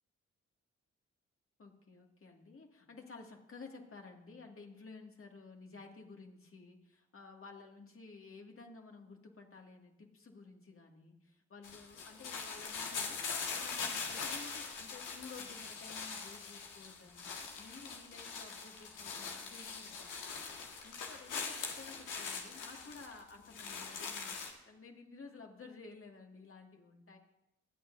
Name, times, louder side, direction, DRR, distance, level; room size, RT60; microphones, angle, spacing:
voice 1, 1.6-27.2, left 4 dB, 40° left, 1 dB, 2.3 m, -54 dB
sound 1, 11.6-24.5, left 5 dB, 70° left, 1.9 m, -42 dB
25.0 x 8.8 x 2.7 m, 0.89 s
hypercardioid pair, 40°, 33 cm